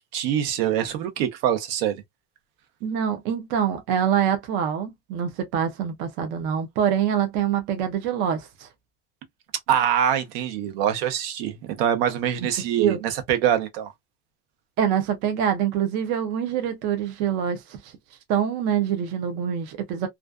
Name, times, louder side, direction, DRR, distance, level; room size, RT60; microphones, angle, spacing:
voice 1, 0.0-1.9 9.7-13.9, right 9 dB, 65° right, 0.8 m, -24 dB
voice 2, 2.8-8.7 12.4-12.5 12.8-13.0 14.8-17.9 18.3-20.1, right 8 dB, 40° right, 0.4 m, -25 dB
2.4 x 2.2 x 2.3 m
cardioid pair, 175°, 31 cm